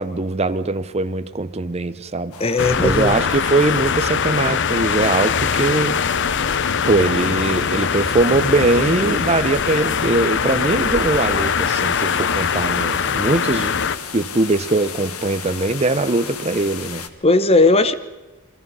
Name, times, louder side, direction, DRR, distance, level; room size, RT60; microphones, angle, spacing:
voice 1, 0.0-2.3 2.8-6.0 6.9-13.8 14.1-17.0, right 2 dB, 30° right, 0.7 m, -21 dB
sound 1, 2.3-17.1, left 6 dB, 85° left, 1.5 m, -35 dB
voice 2, 2.4-3.2 17.2-17.9, left 2 dB, 25° left, 0.9 m, -16 dB
sound 2, 2.6-14.0, left 6 dB, 55° left, 0.7 m, -22 dB
29.5 x 22.0 x 5.5 m
head